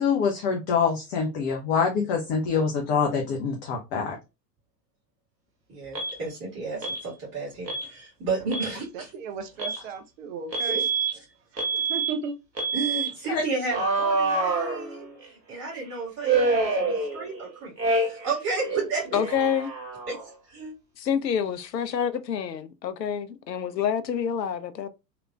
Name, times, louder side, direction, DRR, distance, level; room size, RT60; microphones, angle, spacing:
voice 1, 0.0-4.2 13.3-13.4, left 5 dB, 25° left, 0.4 m, -25 dB
voice 2, 5.8-9.1 10.6-10.9 12.7-15.0 15.5-19.1 20.1-20.2 20.5-20.7, right 4 dB, 30° right, 1.8 m, -32 dB
Alarm, 5.9-6.2 6.8-7.0 7.7-7.9 8.4-8.7 9.6-9.8 10.5-11.1 11.6-12.1 12.6-13.1 13.7-15.2 16.2-17.4 17.8-18.3 18.6-20.3, right 3 dB, 90° right, 0.9 m, -27 dB
voice 3, 8.9-10.8 11.5-12.4, right 5 dB, 50° right, 0.6 m, -35 dB
voice 4, 19.1-19.7 21.0-24.9, left 8 dB, 80° left, 0.5 m, -27 dB
3.1 x 2.8 x 2.2 m
figure-of-eight pair, 85°, 49 cm